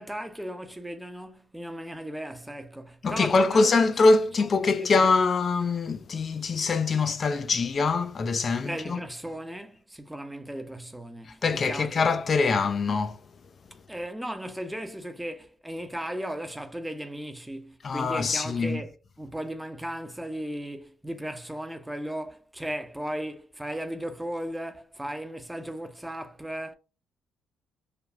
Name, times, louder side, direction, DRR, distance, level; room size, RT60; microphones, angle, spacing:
voice 1, 0.0-3.9 4.4-4.5 4.8-4.9 8.6-12.0 13.9-18.9 19.2-26.7, right 1 dB, 5° right, 0.6 m, -36 dB
voice 2, 3.0-9.0 11.4-13.2 17.8-18.8, left 4 dB, 45° left, 0.4 m, -24 dB
3.3 x 2.0 x 2.4 m
supercardioid pair, 55°, 0 cm